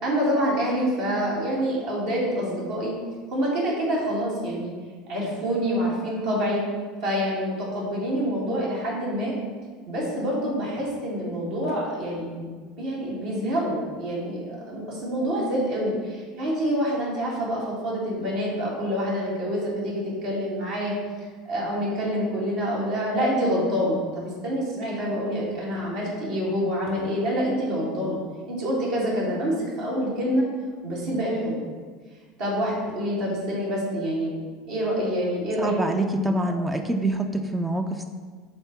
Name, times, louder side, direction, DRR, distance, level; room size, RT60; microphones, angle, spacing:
voice 1, 0.0-2.9 3.3-4.7 5.1-6.6 7.0-9.3 9.9-20.9 21.5-28.2 28.5-30.5 30.8-31.6 32.4-34.3 34.7-35.7, equal, 65° right, -6 dB, 2.0 m, -26 dB
voice 2, 35.6-38.0, right 1 dB, 10° right, 5 dB, 0.5 m, -25 dB
5.1 x 4.1 x 5.8 m, 1.5 s
figure-of-eight pair, 75°, 0 cm